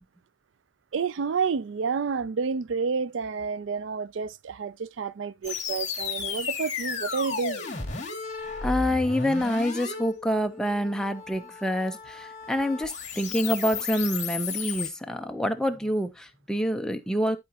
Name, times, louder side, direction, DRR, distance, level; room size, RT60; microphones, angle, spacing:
voice 1, 0.9-7.7, right 5 dB, 75° right, 0.4 m, -29 dB
sound 1, 5.4-14.9, left 5 dB, 35° left, 2.4 m, -34 dB
voice 2, 8.6-17.4, equal, 5° left, 0.7 m, -27 dB
12.0 x 5.0 x 2.9 m
head